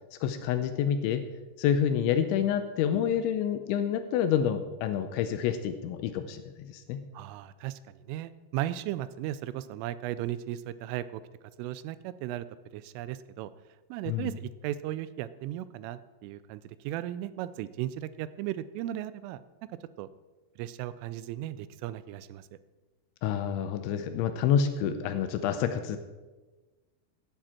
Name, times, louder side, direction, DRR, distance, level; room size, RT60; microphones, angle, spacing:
voice 1, 0.2-1.2 1.6-7.0 14.1-14.3 23.2-26.0, left 8 dB, 80° left, 9 dB, 2.9 m, -28 dB
voice 2, 7.1-11.2 11.6-12.5 12.7-13.5 13.9-19.4 20.0-20.1 20.6-22.5, right 13 dB, 85° right, 15 dB, 3.1 m, -36 dB
16.5 x 9.2 x 4.3 m, 1.2 s
omnidirectional pair, 5.7 m